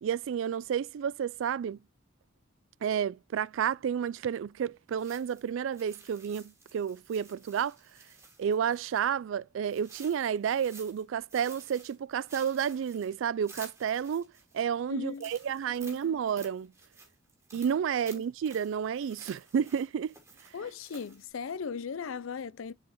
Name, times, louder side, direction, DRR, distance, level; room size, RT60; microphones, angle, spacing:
voice 1, 0.0-1.8 2.8-7.8 8.4-14.3 14.5-16.7 17.5-20.1, right 8 dB, 75° right, 0.3 m, -31 dB
sound 1, 5.0-9.1 9.7-11.0 11.3-14.6 15.1-21.3, right 3 dB, 15° right, 2.3 m, -53 dB
voice 2, 14.9-15.3 15.8-16.1 18.1-18.2 20.5-22.7, left 6 dB, 85° left, 0.5 m, -38 dB
7.3 x 4.8 x 2.9 m
head